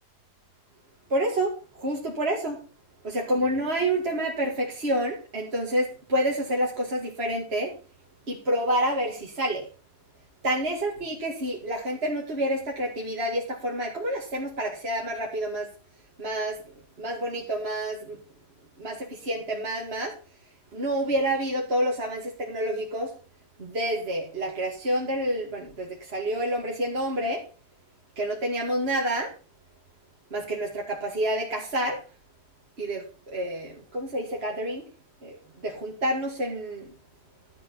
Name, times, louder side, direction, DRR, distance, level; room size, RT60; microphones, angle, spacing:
voice 1, 1.1-2.6 3.0-7.7 8.3-9.7 10.4-15.7 16.2-16.6 17.0-18.2 18.8-20.1 20.7-23.1 23.6-27.4 28.2-29.3 30.3-32.0 32.8-34.9 35.2-35.4 35.6-36.9, right 1 dB, 35° right, -2 dB, 2.5 m, -28 dB
12.0 x 7.5 x 5.6 m, 0.35 s
omnidirectional pair, 1.8 m